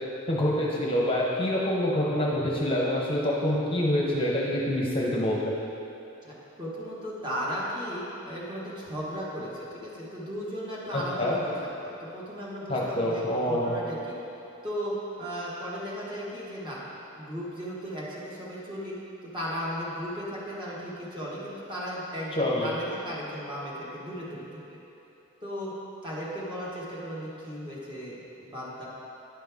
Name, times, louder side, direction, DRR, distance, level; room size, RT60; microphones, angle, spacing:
voice 1, 0.3-5.4 10.9-11.4 12.7-13.8 22.3-22.7, left 1 dB, 25° left, -4 dB, 0.8 m, -26 dB
voice 2, 6.2-11.5 11.8-14.2 14.6-16.8 17.1-18.9 19.3-24.8 25.4-25.7 26.0-28.9, equal, 20° right, -7 dB, 1.4 m, -36 dB
10.5 x 5.3 x 3.6 m, 3.0 s
head